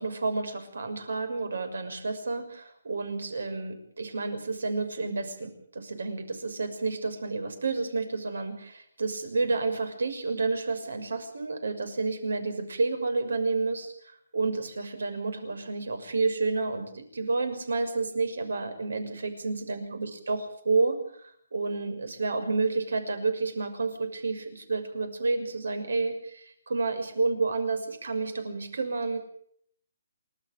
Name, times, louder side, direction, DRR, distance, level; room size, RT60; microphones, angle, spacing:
voice 1, 0.0-13.9 14.3-29.2, right 3 dB, 90° right, 10 dB, 6.3 m, -30 dB
28.5 x 13.0 x 9.1 m, 0.64 s
hypercardioid pair, 180°, 0 cm